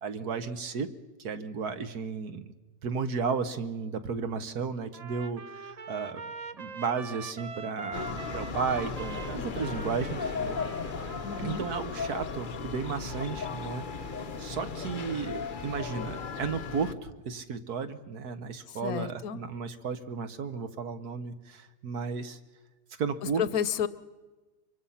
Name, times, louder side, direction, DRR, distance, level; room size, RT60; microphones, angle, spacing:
voice 1, 0.0-0.9 1.2-2.4 2.8-6.2 6.5-10.6 11.4-22.4 23.0-23.4, right 5 dB, 60° right, 10 dB, 1.6 m, -34 dB
Trumpet, 4.9-12.0, right 4 dB, 85° right, 0.3 m, -43 dB
sound 1, 7.9-16.9, left 5 dB, 40° left, 0.8 m, -36 dB
voice 2, 11.2-11.7 18.8-19.4 23.4-23.9, left 8 dB, 60° left, 15 dB, 1.2 m, -30 dB
25.0 x 24.0 x 5.7 m, 1.2 s
omnidirectional pair, 1.9 m